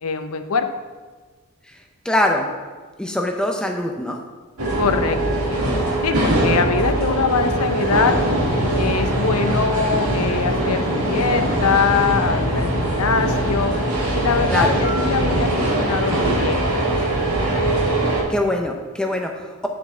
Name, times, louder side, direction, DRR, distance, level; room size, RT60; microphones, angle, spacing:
voice 1, 0.0-0.7 4.8-5.6 6.0-8.1 8.8-13.8 14.1-16.7, left 5 dB, 75° left, 8 dB, 0.6 m, -23 dB
voice 2, 2.0-2.5 3.0-4.2 14.5-14.8 18.3-19.7, left 1 dB, 5° left, 2 dB, 0.6 m, -23 dB
sound 1, 4.6-18.2, right 1 dB, 80° right, 2.0 m, -21 dB
9.4 x 6.7 x 3.8 m, 1.4 s
head